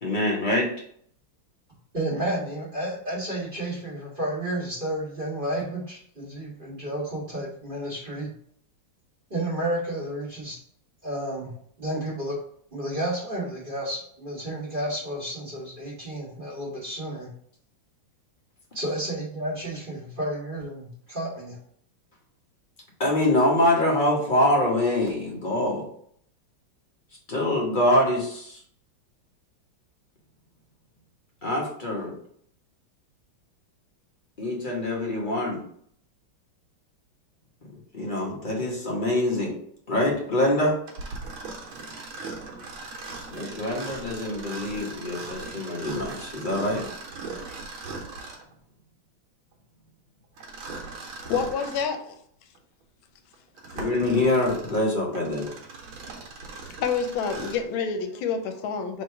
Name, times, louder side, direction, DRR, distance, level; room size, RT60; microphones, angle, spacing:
voice 1, 0.0-0.7 23.0-25.9 27.3-28.6 31.4-32.1 34.4-35.6 37.9-39.6 39.9-40.8 43.3-46.9 53.7-55.5, left 1 dB, 35° left, -2 dB, 0.8 m, -24 dB
voice 2, 1.9-8.3 9.3-10.6 11.0-11.5 11.8-12.4 12.7-17.3 18.7-21.6, right 1 dB, 25° right, -7 dB, 1.8 m, -31 dB
Mechanisms, 40.9-48.5 50.4-52.0 52.6-52.7 53.3-57.7, right 3 dB, 90° right, 1.8 m, -39 dB
voice 3, 51.3-52.1 56.8-59.0, left 6 dB, 85° left, 7 dB, 1.4 m, -28 dB
3.7 x 3.2 x 4.6 m, 0.64 s
omnidirectional pair, 2.2 m